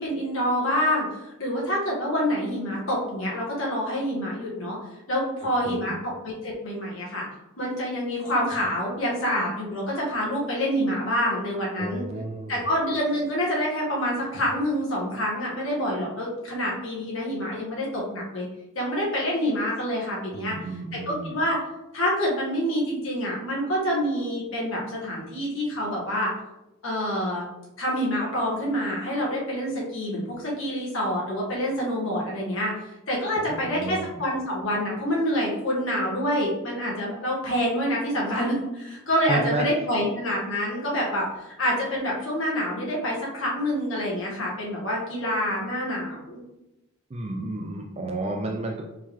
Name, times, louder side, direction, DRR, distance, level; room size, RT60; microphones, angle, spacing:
voice 1, 0.0-4.8 5.1-5.9 6.2-7.3 7.6-12.1 12.5-18.5 18.7-20.5 21.1-21.6 21.9-26.3 26.8-27.5 27.8-32.7 33.1-41.2 41.6-46.4, equal, 70° left, -4 dB, 1.5 m, -27 dB
voice 2, 5.6-6.0 11.8-12.6 20.3-21.3 33.5-34.1 39.3-39.7 47.1-48.8, right 2 dB, 30° right, 1 dB, 0.4 m, -31 dB
4.6 x 3.6 x 3.0 m, 0.94 s
head